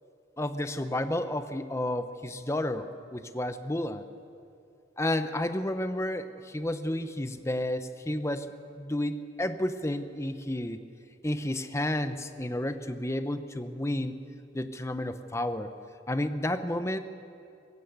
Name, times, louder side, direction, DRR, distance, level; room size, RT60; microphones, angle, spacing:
voice 1, 0.4-4.0 5.0-8.5 8.8-10.8 11.2-14.1 14.5-15.7 16.1-17.0, left 1 dB, 15° left, 9 dB, 0.8 m, -31 dB
20.0 x 16.5 x 8.1 m, 2.5 s
head